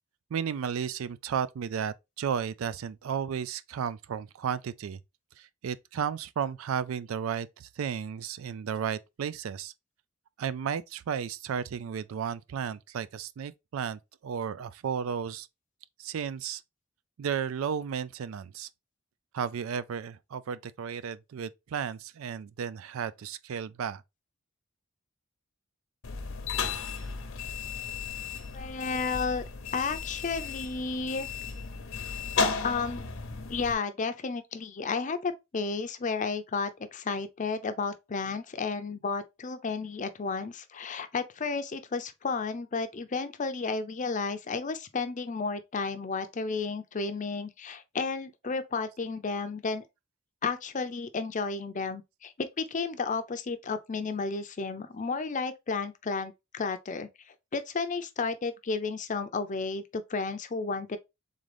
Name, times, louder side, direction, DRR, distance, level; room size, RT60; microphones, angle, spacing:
voice 1, 0.3-5.0 5.4-9.7 10.4-15.5 16.0-16.6 17.2-18.7 19.3-24.0, right 7 dB, 85° right, 0.4 m, -33 dB
sound 1, 26.0-33.7, left 5 dB, 75° left, 0.8 m, -34 dB
voice 2, 28.5-29.4 29.7-31.3 32.6-33.0 33.5-49.8 50.4-61.0, left 4 dB, 40° left, 0.5 m, -32 dB
3.8 x 3.7 x 3.3 m
head